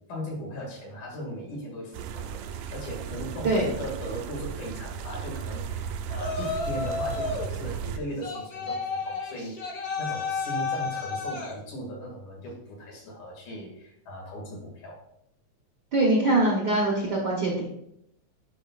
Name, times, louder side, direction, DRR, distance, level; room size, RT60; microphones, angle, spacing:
voice 1, 0.1-15.0, equal, 90° left, -2 dB, 3.5 m, -38 dB
sound 1, 1.9-8.0, right 8 dB, 80° right, 1.7 m, -35 dB
Yell, 6.2-7.5 8.2-11.6, left 4 dB, 75° left, 0.8 m, -32 dB
voice 2, 15.9-17.6, right 2 dB, 60° right, -3 dB, 1.1 m, -23 dB
10.5 x 5.4 x 2.4 m, 0.76 s
omnidirectional pair, 3.3 m